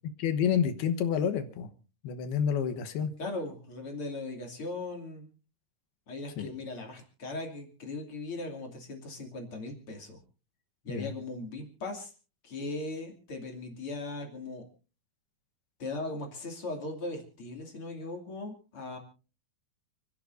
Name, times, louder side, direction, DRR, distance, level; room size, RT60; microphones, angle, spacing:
voice 1, 0.2-1.7 2.0-3.1 6.4-6.5 10.9-11.1, left 8 dB, 85° left, 7 dB, 3.2 m, -29 dB
voice 2, 3.2-5.3 6.1-10.2 10.8-12.1 12.4-14.6 15.8-19.0, left 2 dB, 40° left, 2 dB, 3.1 m, -38 dB
29.5 x 11.0 x 2.7 m, 0.36 s
omnidirectional pair, 4.4 m